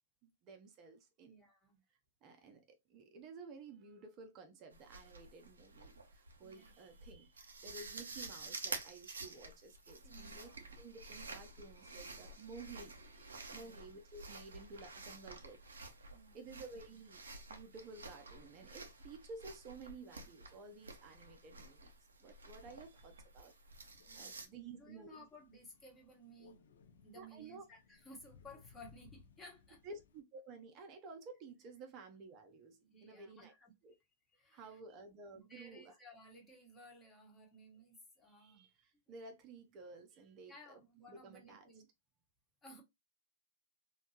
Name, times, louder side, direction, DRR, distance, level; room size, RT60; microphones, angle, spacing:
voice 1, 0.2-1.3 2.2-10.5 10.8-15.6 16.0-16.1 16.3-17.2 17.5-21.9 22.2-23.5 24.2-25.2 27.1-27.6 29.8-33.5 33.8-33.9 34.5-35.9 38.2-40.8 41.1-41.7, right 3 dB, 40° right, 0.6 m, -53 dB
voice 2, 1.2-1.8 2.3-2.5 6.4-6.7 10.0-10.5 11.0-11.1 13.4-13.8 16.1-16.4 24.1-26.6 27.0-29.8 32.8-33.7 34.3-34.8 35.3-38.7 39.1-39.3 40.4-41.9 42.6-42.8, equal, 20° left, 1.0 m, -58 dB
sound 1, 4.7-24.5, right 3 dB, 85° right, 0.6 m, -51 dB
Crow, 23.8-30.2, left 5 dB, 75° left, 0.6 m, -64 dB
2.7 x 2.2 x 2.7 m
hypercardioid pair, 110°, 0 cm